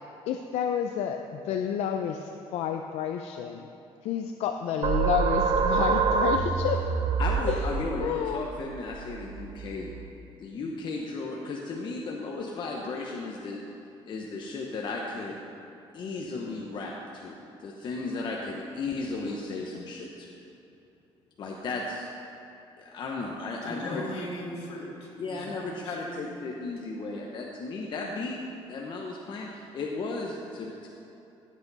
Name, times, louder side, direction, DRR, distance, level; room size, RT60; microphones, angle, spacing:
voice 1, 0.3-3.6 4.0-6.8 7.5-7.7 8.0-8.4, left 8 dB, 80° left, 5 dB, 0.5 m, -30 dB
sound 1, 4.8-10.1, right 5 dB, 45° right, 0.6 m, -27 dB
voice 2, 7.2-9.9 10.4-13.6 14.1-15.4 15.9-20.3 21.4-22.1 22.8-24.0 25.2-28.4 28.7-30.9, left 3 dB, 45° left, -1 dB, 1.0 m, -35 dB
voice 3, 23.6-26.3, left 1 dB, 65° left, -4 dB, 2.8 m, -39 dB
16.0 x 8.3 x 4.1 m, 2.8 s
cardioid pair, 140°, 11 cm